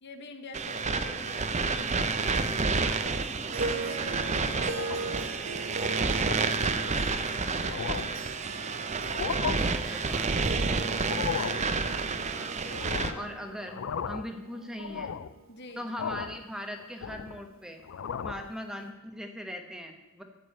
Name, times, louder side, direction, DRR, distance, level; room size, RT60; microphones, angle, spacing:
voice 1, 0.0-2.5 2.8-4.8 12.2-13.3 15.5-15.8, left 3 dB, 55° left, 7 dB, 1.1 m, -47 dB
sound 1, 0.5-13.1, right 4 dB, 35° right, 0.6 m, -30 dB
Harp, 3.5-16.0, right 3 dB, 70° right, 1.5 m, -39 dB
sound 2, 4.7-5.2 5.7-5.9 6.3-6.5 7.1-7.2 7.5-8.2 9.0-9.6 11.0-11.7 12.7-13.3 13.6-14.4 14.8-15.4 16.0-16.4 16.8-17.5 17.8-18.5, left 7 dB, 70° left, 0.4 m, -36 dB
voice 2, 9.4-10.5 13.1-15.1 15.7-17.8 18.2-20.2, equal, 5° right, 4 dB, 1.0 m, -40 dB
13.0 x 5.4 x 8.6 m, 1.1 s
head